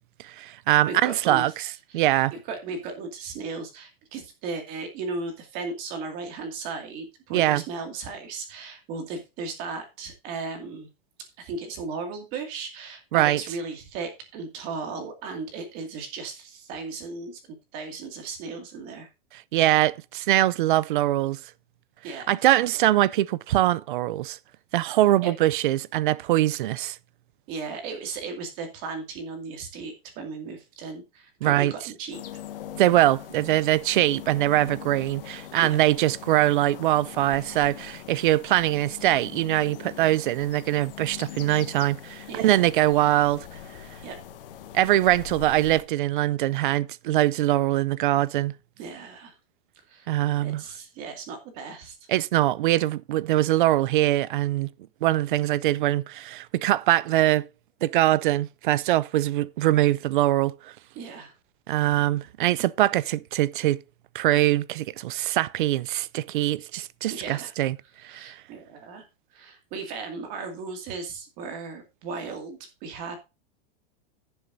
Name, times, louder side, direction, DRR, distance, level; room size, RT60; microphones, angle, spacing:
voice 1, 0.2-1.7 1.9-2.3 7.3-7.6 13.1-13.4 19.5-21.4 22.3-24.4 24.7-27.0 31.4-31.7 32.8-43.5 44.7-48.5 50.1-50.6 52.1-54.7 55.0-57.5 57.8-60.7 61.7-63.8 64.1-67.8 68.0-68.4, right 15 dB, 55° right, 0.5 m, -23 dB
voice 2, 0.9-1.5 1.9-10.9 11.4-19.1 22.0-22.4 25.2-25.3 27.5-32.2 35.6-35.8 42.3-42.7 44.0-44.2 48.8-49.3 49.9-50.1 50.4-52.1 60.9-61.3 67.0-67.5 68.0-69.1 69.3-73.2, right 4 dB, 30° right, 2.3 m, -36 dB
sound 1, 32.1-45.8, left 10 dB, 65° left, 1.6 m, -42 dB
15.5 x 7.1 x 2.7 m
supercardioid pair, 180°, 30 cm